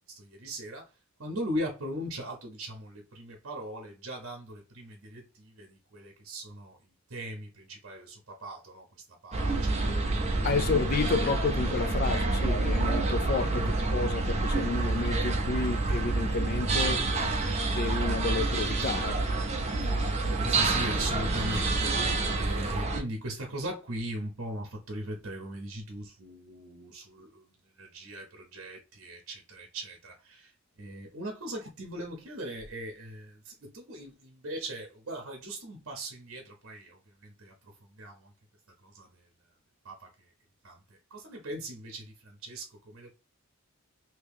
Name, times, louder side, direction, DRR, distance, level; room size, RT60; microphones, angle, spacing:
voice 1, 0.1-0.9 1.2-6.8 7.1-10.0 10.5-10.9 13.4-13.7 20.0-27.4 27.8-30.5 30.8-38.3 38.8-39.2 39.8-40.1 40.6-40.8 41.1-43.1, right 1 dB, 60° right, 0.8 m, -39 dB
sound 1, 9.3-23.0, right 2 dB, 30° right, 0.5 m, -28 dB
voice 2, 10.4-17.0 17.7-19.2, left 4 dB, 45° left, 0.3 m, -31 dB
2.9 x 2.8 x 3.4 m
head